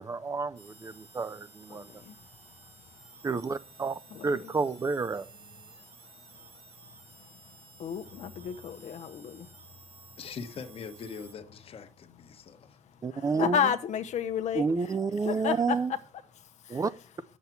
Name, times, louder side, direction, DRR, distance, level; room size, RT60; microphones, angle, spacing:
voice 1, 0.0-1.9 3.2-3.9 4.2-5.3 13.0-13.6 14.5-15.9 16.7-16.9, right 4 dB, 30° right, 0.5 m, -30 dB
sound 1, 0.6-11.3, right 5 dB, 55° right, 1.9 m, -54 dB
voice 2, 1.7-3.3 4.1-4.5 5.2-6.7 7.4-10.2 12.3-16.0 16.3-16.9, left 8 dB, 85° left, 0.9 m, -35 dB
voice 3, 10.2-12.8, left 5 dB, 55° left, 1.2 m, -42 dB
8.2 x 7.4 x 5.9 m
wide cardioid pair, 135°, 12 cm